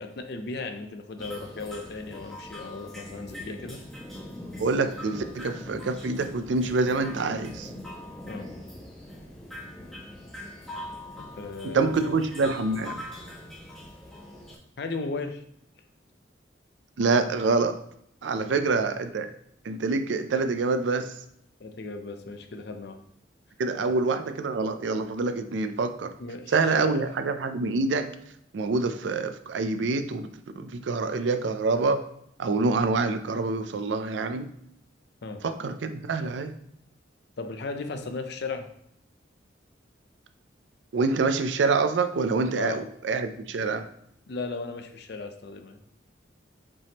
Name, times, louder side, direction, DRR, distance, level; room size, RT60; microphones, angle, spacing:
voice 1, 0.0-3.8 8.3-8.5 11.2-12.2 14.8-15.4 18.4-18.7 21.6-23.0 23.8-23.9 26.2-27.0 35.2-35.4 37.4-38.7 42.6-42.8 44.3-45.8, left 3 dB, 60° left, 6 dB, 0.5 m, -36 dB
sound 1, 1.2-14.6, left 1 dB, ahead, 1.1 m, -42 dB
voice 2, 4.6-7.7 11.6-12.9 17.0-17.8 18.2-19.3 19.6-21.1 23.6-26.1 26.5-28.1 28.5-30.3 30.6-32.0 32.4-34.5 35.4-36.5 40.9-43.8, right 3 dB, 70° right, 9 dB, 0.4 m, -26 dB
5.2 x 3.5 x 2.8 m, 0.72 s
head